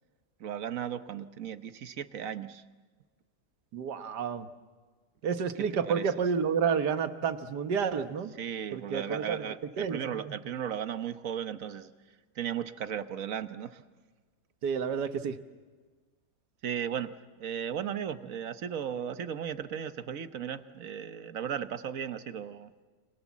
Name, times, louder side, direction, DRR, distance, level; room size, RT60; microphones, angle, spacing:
voice 1, 0.4-2.6 5.8-6.2 8.4-13.8 16.6-17.1 17.4-22.7, right 8 dB, 60° right, 12 dB, 1.3 m, -36 dB
voice 2, 3.7-4.5 5.2-8.3 8.7-9.4 9.8-10.0 14.6-15.4, right 6 dB, 85° right, 10 dB, 1.8 m, -30 dB
29.5 x 26.0 x 7.3 m, 1.4 s
omnidirectional pair, 1.7 m